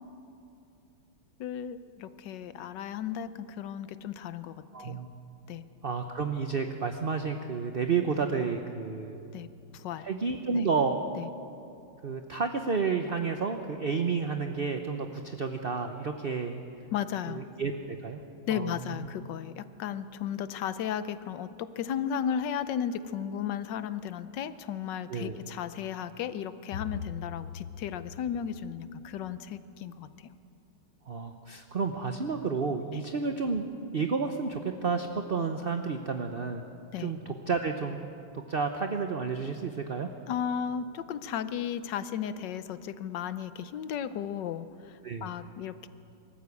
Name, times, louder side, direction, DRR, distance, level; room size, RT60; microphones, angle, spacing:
voice 1, 1.4-5.0 5.5-5.6 9.3-9.5 9.7-10.1 10.5-10.6 11.2-11.3 16.9-17.4 18.5-30.3 32.9-33.0 36.9-37.1 40.3-45.9, left 8 dB, 65° left, 13 dB, 1.3 m, -35 dB
voice 2, 4.7-5.1 5.8-9.2 10.0-11.0 12.0-16.6 17.3-18.2 18.5-19.1 25.1-25.4 31.1-33.7 33.9-36.6 37.0-38.0 38.3-40.1 45.0-45.3, right 5 dB, 50° right, 6 dB, 0.7 m, -31 dB
24.0 x 14.0 x 8.4 m, 2.6 s
omnidirectional pair, 2.2 m